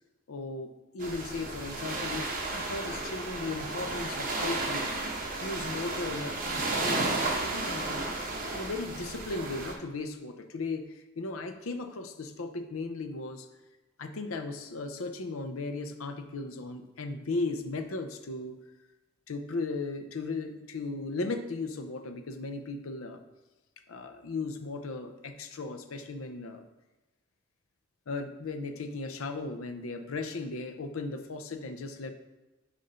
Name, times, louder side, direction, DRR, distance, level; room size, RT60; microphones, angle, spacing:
voice 1, 0.3-4.9 5.4-6.4 6.8-8.0 8.5-13.5 14.0-18.6 19.3-23.2 23.9-26.6 28.1-32.1, left 3 dB, 80° left, 7 dB, 0.6 m, -36 dB
sound 1, 1.0-9.7, right 2 dB, 40° right, 1.0 m, -33 dB
6.5 x 2.6 x 5.5 m, 1.1 s
head